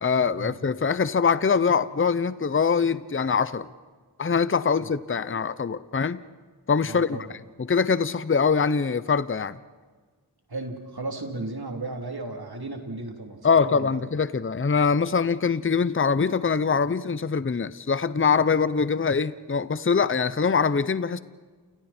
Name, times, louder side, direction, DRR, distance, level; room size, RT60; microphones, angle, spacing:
voice 1, 0.0-3.7 4.2-6.2 6.7-7.2 7.6-9.6 13.4-21.2, left 5 dB, 30° left, 0.7 m, -23 dB
voice 2, 6.9-7.3 10.5-14.0, right 2 dB, 60° right, 3.5 m, -35 dB
29.5 x 29.0 x 4.4 m
wide cardioid pair, 50°, 42 cm